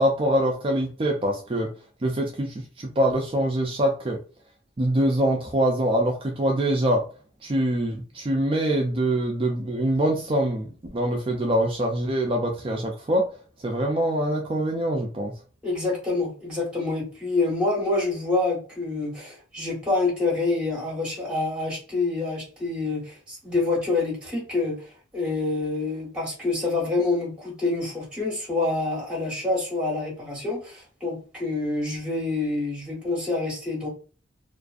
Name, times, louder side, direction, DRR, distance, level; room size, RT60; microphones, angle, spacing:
voice 1, 0.0-1.7 2.0-4.2 4.8-7.0 7.4-13.2 13.6-15.3, right 1 dB, 30° right, 1 dB, 0.4 m, -24 dB
voice 2, 15.6-24.8 25.1-33.9, left 3 dB, 5° right, -3 dB, 1.2 m, -27 dB
2.5 x 2.4 x 2.4 m, 0.38 s
head